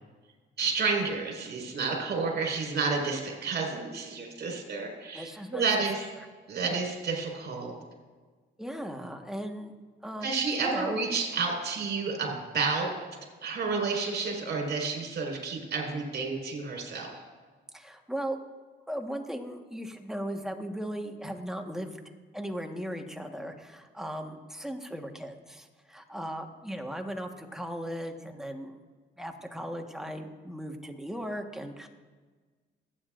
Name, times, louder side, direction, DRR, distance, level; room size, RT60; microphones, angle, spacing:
voice 1, 0.6-6.0 6.5-7.7 10.2-12.9 13.4-17.1, right 4 dB, 55° right, 0 dB, 4.8 m, -30 dB
voice 2, 5.1-5.8 6.7-6.9 8.6-9.7 10.0-10.3 10.6-11.0 17.7-18.4 18.9-22.0 22.3-28.8 29.2-31.9, equal, ahead, 3 dB, 1.4 m, -37 dB
28.5 x 9.8 x 2.5 m, 1.4 s
cardioid pair, 90°, 20 cm